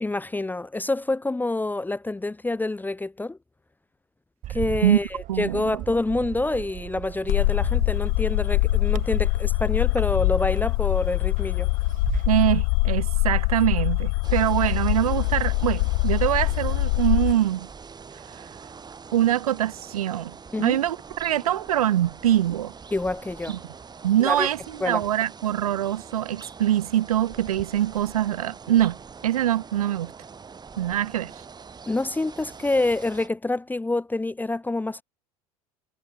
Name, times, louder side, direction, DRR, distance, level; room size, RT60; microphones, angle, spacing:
voice 1, 0.0-3.4 4.5-11.7 20.5-20.8 22.9-23.6 24.2-24.5 24.8-25.0 31.9-35.0, left 2 dB, 10° left, 1.1 m, -27 dB
Bird, 4.4-12.4, right 13 dB, 45° right, 5.2 m, -36 dB
voice 2, 5.3-5.8 12.3-17.7 18.4-18.5 19.1-22.7 23.5-23.6 24.0-29.0 29.2-30.1 30.8-31.3, right 12 dB, 70° right, 1.0 m, -24 dB
sound 1, 7.3-17.3, left 40 dB or more, 55° left, 0.9 m, -23 dB
sound 2, 14.2-33.3, right 5 dB, 20° right, 2.2 m, -43 dB
figure-of-eight pair, 70°, 19 cm